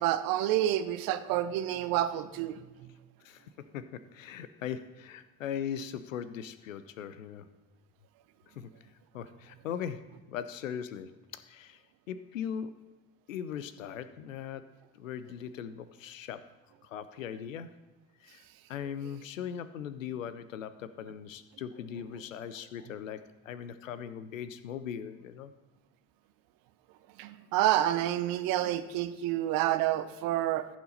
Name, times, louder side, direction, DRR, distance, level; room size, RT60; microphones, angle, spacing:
voice 1, 0.0-2.6 27.2-30.7, right 13 dB, 65° right, 11 dB, 0.8 m, -28 dB
voice 2, 3.2-7.5 8.5-8.7 9.1-11.8 12.1-12.9 13.3-14.7 15.0-16.5 16.8-17.8 18.2-18.4 18.7-25.5, left 8 dB, 90° left, 13 dB, 0.5 m, -39 dB
14.5 x 5.9 x 4.1 m, 1.2 s
figure-of-eight pair, 45°, 38 cm